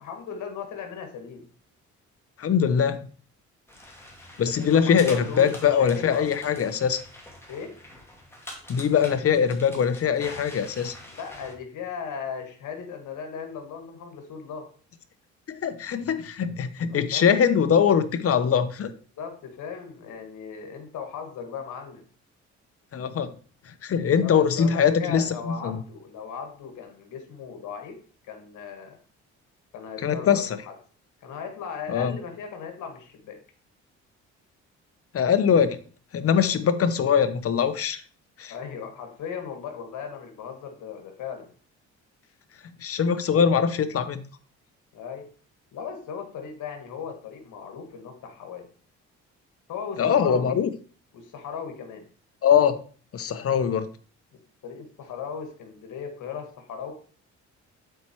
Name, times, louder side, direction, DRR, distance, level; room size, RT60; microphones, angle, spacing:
voice 1, 0.0-1.4 4.7-6.6 7.5-7.8 11.1-14.7 16.9-17.2 19.2-22.0 24.2-28.0 28.3-29.0 29.7-30.7 31.2-33.4 36.3-36.5 38.5-41.5 44.9-45.3 45.7-48.7 49.7-50.5 51.1-52.1 54.6-56.9, left 6 dB, 80° left, 5 dB, 1.8 m, -37 dB
voice 2, 2.4-3.0 4.4-7.0 8.7-10.9 15.5-18.9 22.9-23.3 23.8-25.8 30.0-30.6 31.9-32.2 35.1-35.8 36.1-38.0 38.4-38.5 42.8-44.2 50.0-50.7 52.4-52.8 53.1-53.9, left 7 dB, 50° left, 12 dB, 0.8 m, -22 dB
sound 1, 3.7-11.5, left 1 dB, 10° left, 2.3 m, -45 dB
7.9 x 4.5 x 4.5 m, 0.42 s
cardioid pair, 90°, 30 cm